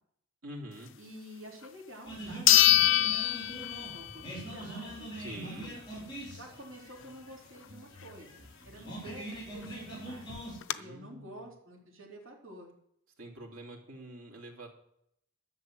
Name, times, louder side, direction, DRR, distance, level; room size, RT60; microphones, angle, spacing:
voice 1, 0.4-0.9 5.2-5.7 8.7-9.0 10.7-11.4 13.2-14.7, right 1 dB, 80° right, -1 dB, 3.1 m, -46 dB
voice 2, 1.0-2.9 3.7-5.1 5.4-5.8 6.3-10.3 10.7-12.7, equal, 60° right, -3 dB, 3.8 m, -49 dB
sound 1, 1.6-1.7 2.5-4.2 4.6-4.7 9.3-9.4 9.6-9.7 10.3-10.7, left 15 dB, 60° left, 0.5 m, -24 dB
sound 2, 2.0-10.6, right 1 dB, 20° left, 5.0 m, -43 dB
11.5 x 6.9 x 7.7 m, 0.74 s
head